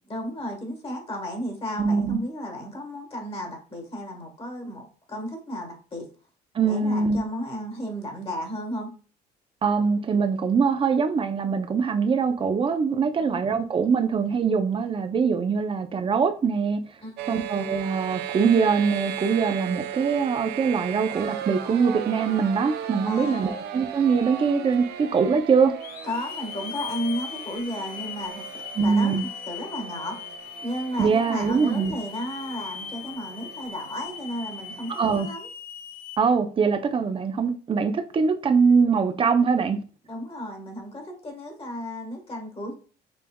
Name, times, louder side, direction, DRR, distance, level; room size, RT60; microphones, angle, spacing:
voice 1, 0.1-6.1 6.6-8.9 13.2-13.4 17.0-17.4 23.0-23.5 26.0-28.5 28.8-30.2 30.6-35.5 40.1-42.7, equal, 35° left, 1.5 m, -33 dB
voice 2, 1.8-2.2 6.5-7.2 9.6-16.8 17.3-25.7 28.8-29.2 31.0-32.0 35.0-35.3 36.2-39.8, right 5 dB, 30° right, 0.5 m, -23 dB
sound 1, 17.2-35.0, right 10 dB, 80° right, 0.5 m, -37 dB
Hiss / Alarm, 24.7-24.8 25.8-36.2, left 8 dB, 60° left, 0.5 m, -39 dB
5.3 x 3.3 x 2.3 m
cardioid pair, 110°, 17 cm